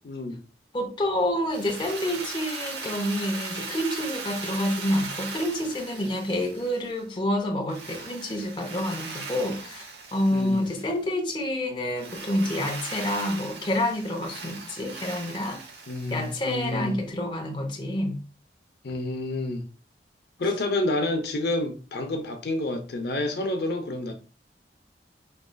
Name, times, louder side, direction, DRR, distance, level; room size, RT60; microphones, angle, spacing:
voice 1, 0.0-0.4 10.3-10.7 15.9-17.0 18.8-19.7 20.4-24.1, left 2 dB, 60° left, 0.6 m, -29 dB
voice 2, 0.7-15.6 16.1-18.2, left 1 dB, 25° left, 0.7 m, -28 dB
Drill, 1.5-7.0 7.7-11.0 12.0-16.8, right 4 dB, 75° right, 0.8 m, -39 dB
5.1 x 3.0 x 2.2 m
head